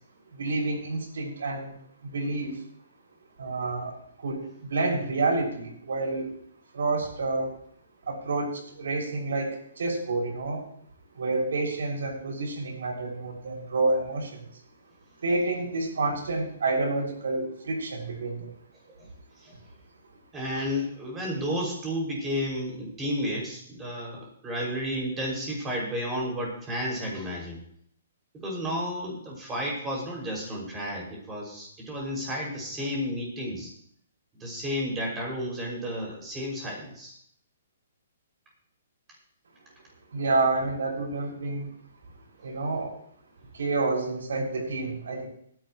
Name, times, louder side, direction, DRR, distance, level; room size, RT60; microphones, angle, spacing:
voice 1, 0.3-1.8 2.0-2.6 3.4-6.3 6.7-7.5 8.0-10.6 11.1-14.5 15.2-18.5 40.1-41.7 42.4-43.0 43.5-45.3, right 3 dB, 80° right, 0 dB, 6.6 m, -29 dB
voice 2, 20.3-27.6 28.4-33.7 34.4-37.1, equal, 15° right, -1 dB, 6.2 m, -32 dB
21.0 x 11.0 x 3.2 m, 0.65 s
hypercardioid pair, 155°, 0 cm